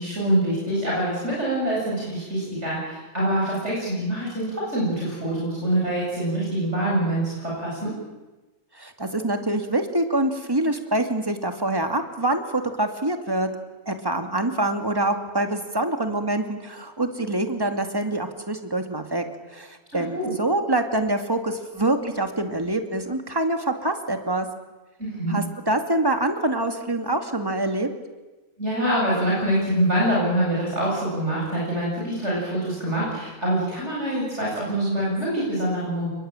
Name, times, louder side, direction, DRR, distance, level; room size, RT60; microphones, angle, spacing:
voice 1, 0.0-7.9 19.9-20.3 25.0-25.4 28.6-36.1, right 1 dB, 60° right, -5 dB, 8.4 m, -25 dB
voice 2, 8.7-13.5 13.9-19.2 19.5-24.5 25.3-27.9, right 2 dB, 15° right, 5 dB, 2.5 m, -25 dB
30.0 x 21.0 x 9.1 m, 1.1 s
omnidirectional pair, 1.4 m